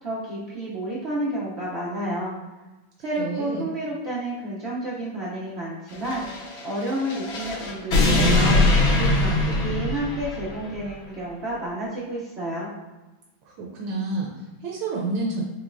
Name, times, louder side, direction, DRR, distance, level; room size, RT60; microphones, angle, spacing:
voice 1, 0.0-2.3 3.0-6.2 6.6-8.6 8.9-12.7, right 1 dB, 90° right, -7 dB, 0.5 m, -30 dB
voice 2, 3.2-3.7 13.5-15.4, right 3 dB, 70° right, -2 dB, 1.2 m, -29 dB
sound 1, 5.9-10.7, left 2 dB, 75° left, 1.7 m, -22 dB
5.0 x 3.2 x 2.5 m, 1.1 s
omnidirectional pair, 2.3 m